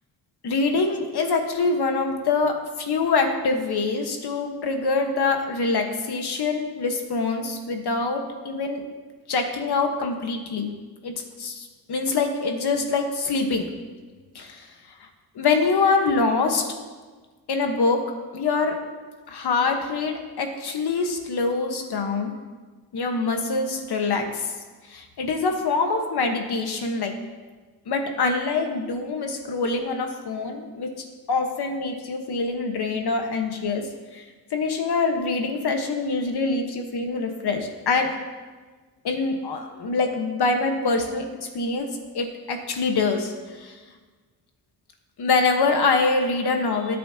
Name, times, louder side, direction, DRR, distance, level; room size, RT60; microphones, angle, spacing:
voice 1, 0.4-8.8 9.3-10.7 11.0-13.7 14.3-14.7 15.3-16.6 17.5-18.0 18.3-18.8 19.3-22.3 22.9-24.5 24.8-27.2 27.9-30.9 31.3-33.9 34.1-34.2 34.5-38.2 39.0-41.9 42.1-43.7 45.2-47.0, left 4 dB, 80° left, 4 dB, 1.4 m, -24 dB
17.0 x 8.4 x 2.9 m, 1.4 s
wide cardioid pair, 160°, 38 cm